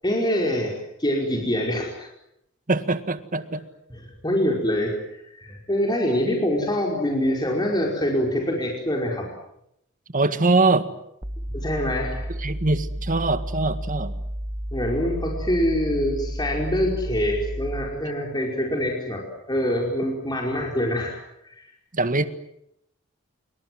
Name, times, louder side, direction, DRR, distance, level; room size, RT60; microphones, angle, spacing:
voice 1, 0.0-2.1 3.9-5.0 5.2-9.3 11.5-12.3 14.7-21.2 21.4-21.7, equal, 20° left, -1 dB, 5.1 m, -25 dB
voice 2, 2.7-3.6 10.1-10.9 12.4-14.1 21.9-22.3, right 3 dB, 40° right, 11 dB, 1.8 m, -22 dB
sound 1, 11.2-18.0, equal, 25° right, 1.6 m, -32 dB
27.5 x 24.5 x 7.8 m, 0.78 s
head